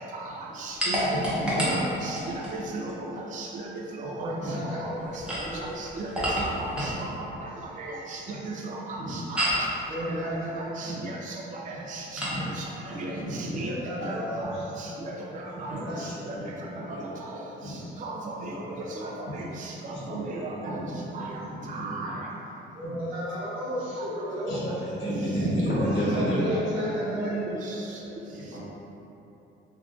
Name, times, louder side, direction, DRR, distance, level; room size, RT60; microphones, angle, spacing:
voice 1, 0.1-3.7 4.0-4.3 4.8-4.9 5.8-6.1 6.4-6.9 7.8-9.7 10.6-12.3 12.5-13.7 14.0-15.7 16.0-16.4 16.9-17.4 17.7-20.7 21.1-21.2 21.7-22.3 24.0-24.1 25.6-28.0, right 2 dB, 40° right, -2 dB, 0.4 m, -35 dB
sound 1, 0.8-2.6 5.1-7.0 9.4-9.7 12.2-12.4, equal, 5° right, 0.8 m, -29 dB
voice 2, 1.4-1.7 4.0-4.1 4.4-4.6 8.9-9.1 10.8-11.0 12.2-12.4 12.9-13.7 15.5-16.6 16.9-17.0 17.6-18.0 18.5-18.6 19.9-21.4 21.7-22.0 24.5-26.6 28.3-28.6, equal, 70° left, -9 dB, 1.1 m, -31 dB
voice 3, 4.2-5.7 9.9-10.9 11.4-11.8 13.5-14.7 15.7-16.7 18.8-19.2 22.7-25.1 26.3-27.3, equal, 85° right, -9 dB, 1.0 m, -34 dB
3.3 x 2.5 x 2.5 m, 3.0 s
cardioid pair, 90°, 20 cm